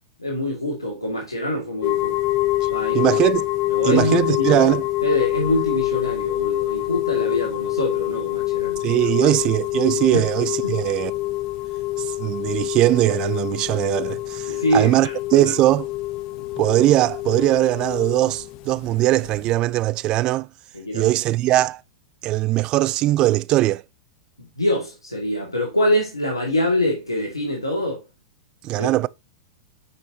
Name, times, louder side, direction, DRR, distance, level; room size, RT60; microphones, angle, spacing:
voice 1, 0.2-2.2 2.7-3.1 3.7-4.5 5.0-8.8 10.1-10.3 10.6-10.7 14.5-15.1 15.4-15.5 20.7-21.2 24.6-28.0 28.8-28.9, left 1 dB, 85° left, 2.3 m, -24 dB
sound 1, 1.8-19.5, left 17 dB, 40° left, 0.7 m, -26 dB
voice 2, 2.9-3.5 3.8-4.8 8.8-11.1 12.1-15.9 16.6-20.5 20.9-21.8 22.2-23.8 28.6-29.1, right 16 dB, 35° right, 0.4 m, -20 dB
9.2 x 5.4 x 2.9 m
figure-of-eight pair, 95°, 2 cm